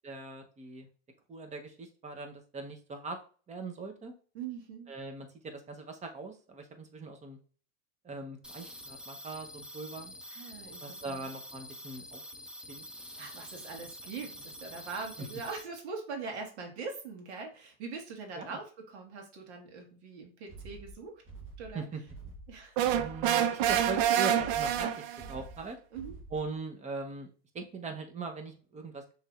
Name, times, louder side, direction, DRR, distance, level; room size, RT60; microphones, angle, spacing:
voice 1, 0.0-0.9 1.3-3.2 3.5-4.1 4.9-7.4 8.0-10.1 10.8-12.2 12.7-12.9 15.2-15.3 18.4-18.6 21.7-22.0 23.0-25.8 26.3-27.3 27.5-29.1, right 3 dB, 20° right, 5 dB, 0.9 m, -40 dB
voice 2, 4.3-4.9 10.3-11.3 13.2-21.2 21.6-21.9 22.5-23.0 23.3-23.5 25.9-26.1, right 4 dB, 85° right, 2 dB, 1.6 m, -42 dB
sound 1, 8.4-15.6, equal, 5° right, 0.5 m, -47 dB
sound 2, 20.5-26.6, right 3 dB, 40° right, 1.6 m, -48 dB
sound 3, 22.8-25.4, right 10 dB, 60° right, 0.6 m, -27 dB
6.2 x 3.2 x 2.4 m, 0.40 s
supercardioid pair, 120°, 32 cm